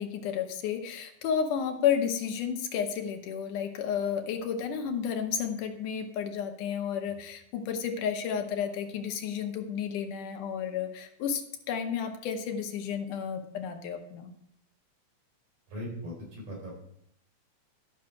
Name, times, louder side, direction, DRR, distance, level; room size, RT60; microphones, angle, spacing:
voice 1, 0.0-14.3, left 8 dB, 80° left, 5 dB, 2.5 m, -32 dB
voice 2, 15.7-16.7, equal, 80° right, -3 dB, 5.6 m, -39 dB
12.0 x 6.4 x 4.7 m, 0.72 s
omnidirectional pair, 3.6 m